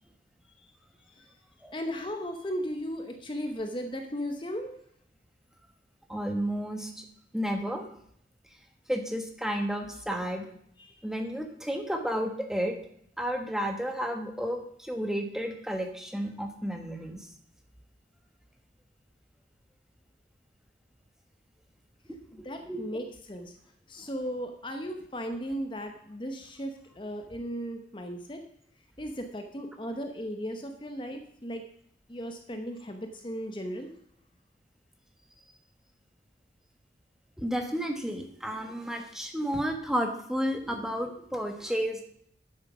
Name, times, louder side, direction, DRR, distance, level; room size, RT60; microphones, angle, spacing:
voice 1, 1.7-4.8 10.8-11.0 22.3-23.6 23.9-28.4 29.0-31.6 32.1-33.9, equal, 25° left, 5 dB, 0.9 m, -36 dB
voice 2, 6.1-7.0 7.3-7.9 8.9-10.5 11.0-12.8 13.2-17.3 22.4-22.9 24.0-24.1 37.4-42.0, equal, 5° right, 4 dB, 1.2 m, -32 dB
9.7 x 7.4 x 6.1 m, 0.68 s
head